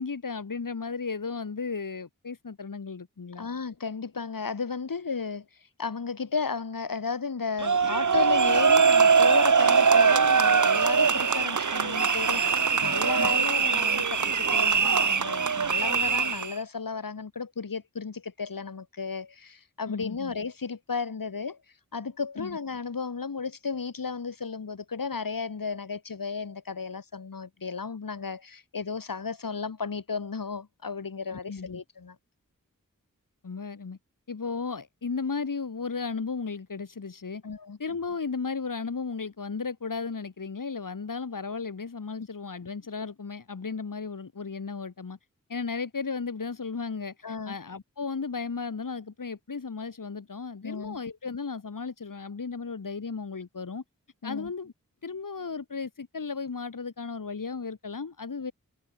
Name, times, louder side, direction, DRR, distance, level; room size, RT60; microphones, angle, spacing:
voice 1, 0.0-3.5 13.2-13.3 19.9-20.3 22.4-22.6 31.3-31.8 33.4-34.0 34.3-37.4 37.8-45.2 45.5-53.8 54.2-54.7 55.0-58.5, left 4 dB, 75° left, 2.7 m, -35 dB
voice 2, 3.4-5.5 5.8-21.6 21.9-32.2 37.4-37.8 42.2-42.3 47.2-47.6 50.6-51.0 54.2-54.5, left 5 dB, 90° left, 4.6 m, -34 dB
sound 1, 7.6-16.5, right 5 dB, 65° right, 1.2 m, -22 dB
cardioid pair, 45°, 33 cm